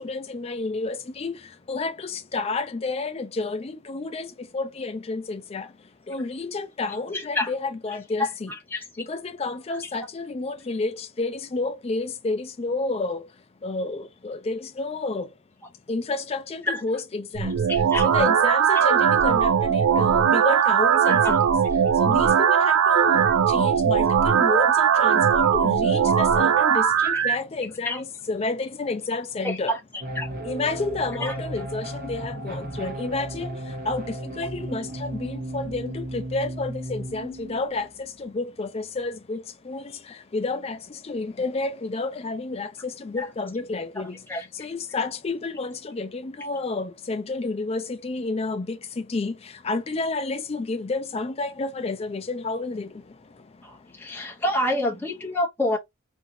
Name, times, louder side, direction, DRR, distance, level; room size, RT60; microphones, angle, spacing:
voice 1, 0.0-8.5 9.0-15.3 15.9-17.6 18.0-21.4 21.9-29.7 30.4-54.3, left 3 dB, 30° left, 0.4 m, -30 dB
voice 2, 7.1-7.5 8.2-8.3 8.7-8.8 16.7-16.8 17.7-18.1 18.7-18.8 21.1-21.4 27.1-27.2 27.8-28.0 29.4-29.8 30.2-30.3 31.2-31.3 43.2-43.3 44.3-44.5 53.6-55.8, left 1 dB, 10° left, 0.8 m, -27 dB
sound 1, 17.4-27.4, right 8 dB, 80° right, 0.4 m, -19 dB
sound 2, 30.0-37.9, right 1 dB, 45° right, 0.7 m, -35 dB
2.8 x 2.7 x 2.7 m
head